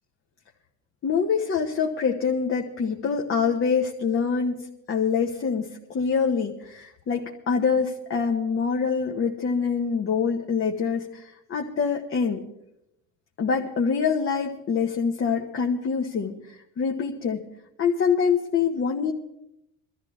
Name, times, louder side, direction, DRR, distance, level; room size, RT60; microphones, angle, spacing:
voice 1, 1.0-4.6 4.9-12.4 13.4-16.4 16.8-17.4 17.8-19.1, left 6 dB, 35° left, 1 dB, 1.3 m, -25 dB
22.5 x 13.5 x 3.6 m, 0.82 s
cardioid pair, 110°, 35 cm